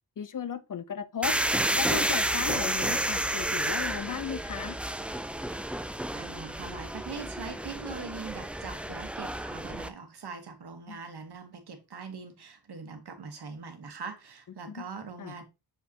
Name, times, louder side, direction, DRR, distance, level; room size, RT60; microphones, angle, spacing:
voice 1, 0.2-1.3 1.8-4.7 10.9-11.0 14.7-14.8 15.2-15.3, left 7 dB, 50° left, 0.6 m, -35 dB
sound 1, 1.2-9.9, right 1 dB, 5° right, 0.3 m, -31 dB
voice 2, 6.1-15.4, right 5 dB, 70° right, 1.3 m, -42 dB
6.7 x 5.0 x 2.8 m
wide cardioid pair, 105°, 40 cm